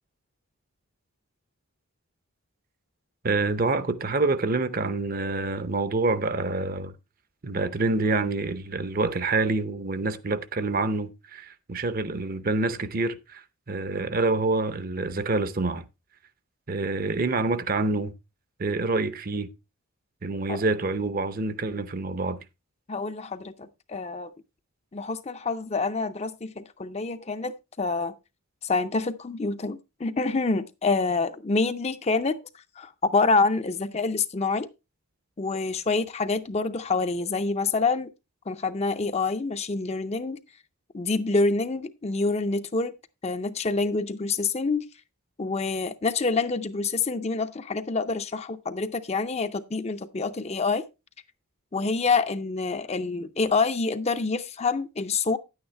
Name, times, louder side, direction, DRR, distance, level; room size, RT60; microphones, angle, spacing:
voice 1, 3.2-6.9 7.4-15.9 16.7-18.1 18.6-19.5 20.2-22.4, right 3 dB, 40° right, 0.6 m, -27 dB
voice 2, 22.9-24.3 24.9-28.1 28.6-32.4 32.8-34.7 35.4-38.1 38.5-40.4 40.9-42.9 43.2-44.9 45.4-50.8 51.7-55.4, left 3 dB, 30° left, 0.5 m, -27 dB
10.0 x 8.8 x 3.2 m
head